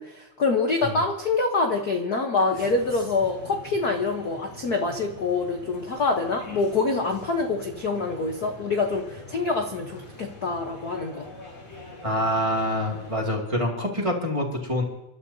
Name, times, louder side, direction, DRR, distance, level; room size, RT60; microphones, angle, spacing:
voice 1, 0.0-11.3, left 3 dB, 70° left, 3 dB, 0.9 m, -26 dB
sound 1, 2.5-13.2, left 1 dB, 45° left, 5.1 m, -44 dB
voice 2, 12.0-14.8, equal, 10° right, -1 dB, 1.9 m, -26 dB
29.0 x 12.5 x 2.8 m, 0.96 s
omnidirectional pair, 3.4 m